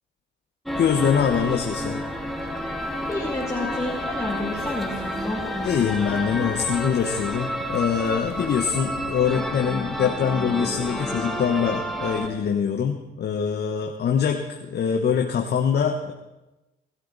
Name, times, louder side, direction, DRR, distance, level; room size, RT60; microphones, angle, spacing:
sound 1, 0.7-12.3, equal, ahead, 2.1 m, -30 dB
voice 1, 0.8-2.0 5.6-16.1, left 7 dB, 55° left, 3 dB, 1.3 m, -24 dB
voice 2, 3.1-5.4, left 2 dB, 15° left, -3 dB, 2.4 m, -30 dB
20.0 x 12.5 x 4.1 m, 1.0 s
cardioid pair, 90°, 20 cm